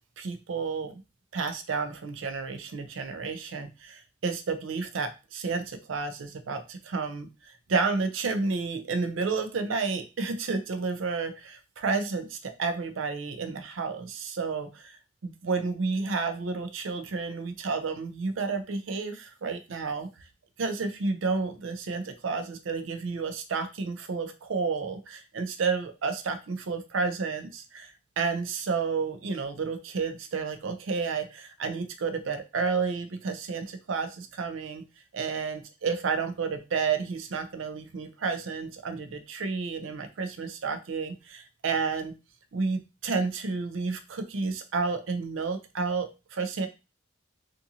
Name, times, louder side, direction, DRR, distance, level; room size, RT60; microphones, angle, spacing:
voice 1, 0.2-1.0 1.3-15.0 15.2-20.1 20.6-34.8 35.1-42.1 42.5-46.7, right 4 dB, 85° right, 8 dB, 0.5 m, -31 dB
2.5 x 2.5 x 2.7 m, 0.29 s
head